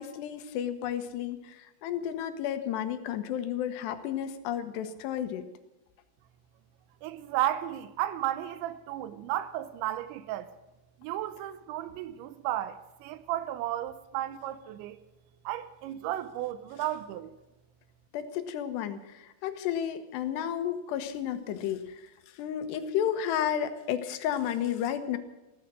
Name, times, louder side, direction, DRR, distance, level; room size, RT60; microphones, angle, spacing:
voice 1, 0.0-5.5 18.1-22.0 22.3-25.2, left 10 dB, 75° left, 3.2 m, -32 dB
voice 2, 7.0-10.5 11.0-15.0 15.5-17.3, right 13 dB, 85° right, 3.1 m, -33 dB
16.0 x 14.0 x 6.2 m
omnidirectional pair, 5.1 m